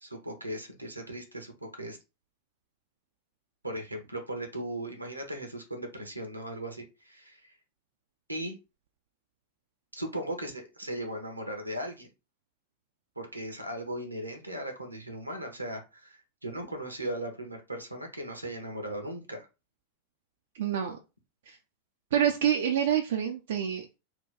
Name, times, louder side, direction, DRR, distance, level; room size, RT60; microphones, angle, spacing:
voice 1, 0.0-2.0 3.6-7.5 8.3-8.5 9.9-12.1 13.2-19.5, right 1 dB, 85° right, 4 dB, 0.8 m, -37 dB
voice 2, 20.6-21.0 21.5-21.6 22.1-24.0, right 9 dB, 60° right, 4 dB, 0.4 m, -27 dB
2.9 x 2.3 x 3.7 m, 0.28 s
figure-of-eight pair, 90°, 0 cm